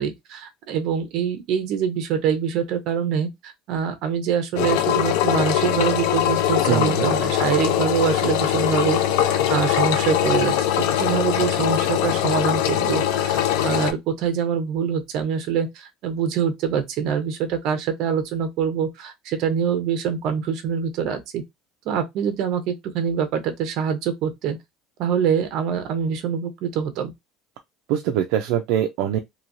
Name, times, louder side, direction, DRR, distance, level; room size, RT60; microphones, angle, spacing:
voice 1, 0.0-21.4 21.8-24.6 25.0-27.1, right 7 dB, 50° right, 0.8 m, -25 dB
Engine, 4.6-13.9, left 11 dB, 80° left, 0.5 m, -21 dB
voice 2, 6.7-7.1 27.9-29.2, right 10 dB, 65° right, 0.4 m, -23 dB
3.0 x 2.7 x 2.6 m
cardioid pair, 170°, 0 cm